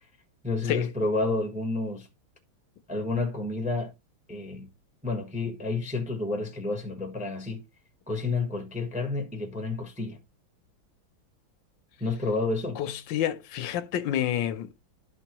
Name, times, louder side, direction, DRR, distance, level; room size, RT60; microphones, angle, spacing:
voice 1, 0.4-2.1 2.9-3.9 4.3-4.7 5.0-7.6 8.1-10.2 12.0-12.8, left 3 dB, 5° right, 0.6 m, -30 dB
voice 2, 12.8-14.7, left 11 dB, 75° left, 1.3 m, -29 dB
12.5 x 4.5 x 2.9 m
omnidirectional pair, 2.1 m